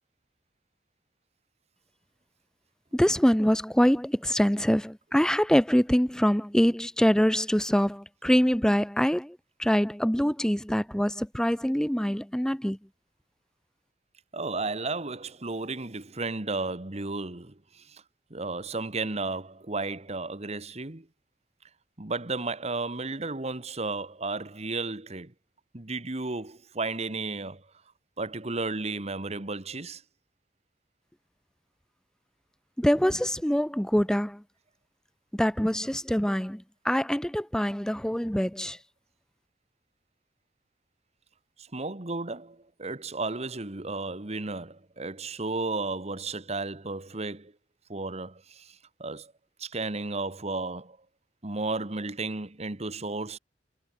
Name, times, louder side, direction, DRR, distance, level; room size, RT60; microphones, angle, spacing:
voice 1, 2.9-12.8 32.8-34.4 35.3-38.8, equal, 5° left, 0.7 m, -24 dB
voice 2, 14.3-18.0 18.3-21.1 22.0-25.3 25.7-27.7 28.2-30.0 41.6-47.5 47.9-49.3 49.6-51.0 51.4-53.4, right 3 dB, 40° right, 1.5 m, -33 dB
head